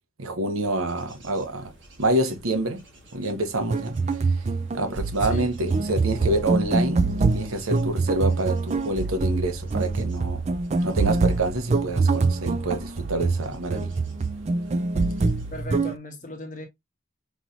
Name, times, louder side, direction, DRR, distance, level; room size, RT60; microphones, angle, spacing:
voice 1, 0.2-1.7 2.0-2.8 3.1-3.9 4.7-10.4 10.8-13.9, right 1 dB, 90° right, 0.9 m, -27 dB
Bird / Insect / Wind, 0.6-15.6, left 1 dB, 60° right, 2.0 m, -45 dB
sound 1, 3.6-15.9, right 3 dB, 30° right, 0.3 m, -25 dB
voice 2, 5.2-5.5 15.5-16.7, left 1 dB, 40° left, 1.1 m, -37 dB
5.3 x 3.1 x 2.5 m
head